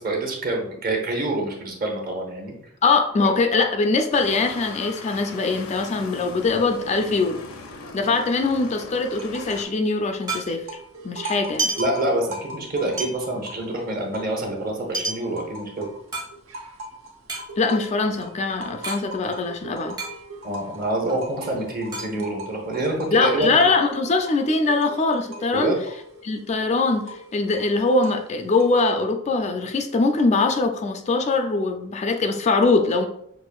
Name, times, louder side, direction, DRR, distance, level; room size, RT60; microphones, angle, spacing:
voice 1, 0.0-2.5 11.8-15.9 20.4-23.6 25.5-25.8, right 1 dB, 45° right, 0 dB, 1.0 m, -26 dB
voice 2, 2.8-7.4 7.9-10.7 11.0-11.7 17.6-20.0 22.2-22.3 23.1-25.7 26.2-33.1, left 3 dB, 35° left, 5 dB, 0.3 m, -22 dB
sound 1, 4.1-9.6, left 3 dB, 85° left, 0.6 m, -39 dB
sound 2, 6.4-8.0 8.2-8.3 8.6-10.9 11.4-12.6 13.0-16.8 17.2-19.0 19.3-19.4 19.7-20.6 21.0-23.0 23.4-24.2, right 3 dB, 20° right, 0.7 m, -33 dB
sound 3, 9.1-9.8 10.0-14.7 15.1-28.9, right 1 dB, 80° right, 0.7 m, -40 dB
6.1 x 2.5 x 2.3 m, 0.70 s
head